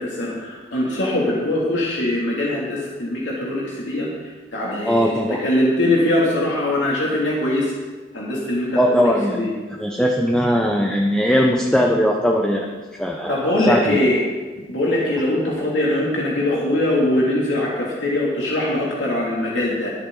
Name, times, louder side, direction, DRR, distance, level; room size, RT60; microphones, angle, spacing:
voice 1, 0.0-4.1 4.5-7.7 8.1-9.5 13.3-14.3 14.7-19.9, left 1 dB, 85° left, -5 dB, 2.8 m, -22 dB
voice 2, 4.8-5.4 8.7-12.6 13.0-14.0, equal, 5° left, 0 dB, 0.9 m, -19 dB
22.5 x 8.6 x 4.0 m, 1.3 s
head